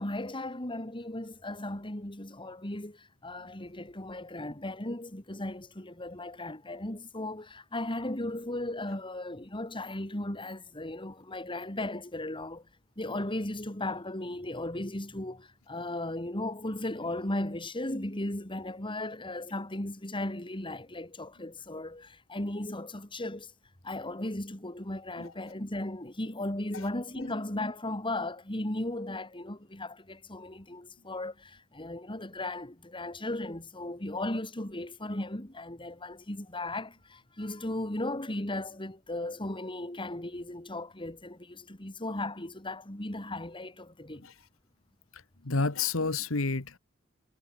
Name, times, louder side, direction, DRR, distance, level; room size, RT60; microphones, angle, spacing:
voice 1, 0.0-12.6 13.0-23.5 23.8-44.3, left 1 dB, 25° left, 3.0 m, -36 dB
voice 2, 45.4-46.8, left 3 dB, 70° left, 1.5 m, -30 dB
head